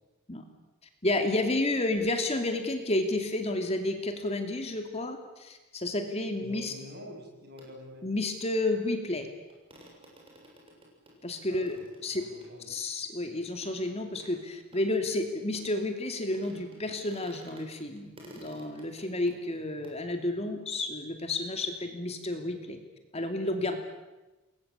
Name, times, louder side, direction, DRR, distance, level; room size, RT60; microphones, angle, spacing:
voice 1, 1.0-6.7 8.0-9.3 11.2-11.8 12.0-12.2 12.7-22.8 23.1-23.8, left 2 dB, 30° left, 6 dB, 2.7 m, -31 dB
voice 2, 6.4-8.1 11.5-11.9 12.2-12.7, left 1 dB, 50° right, 3 dB, 6.5 m, -46 dB
sound 1, 7.6-7.7 8.9-9.0 9.2-9.3 9.5-16.1 16.3-17.7 17.9-19.9, right 1 dB, 25° right, 7.1 m, -53 dB
29.0 x 21.5 x 8.5 m, 1.1 s
head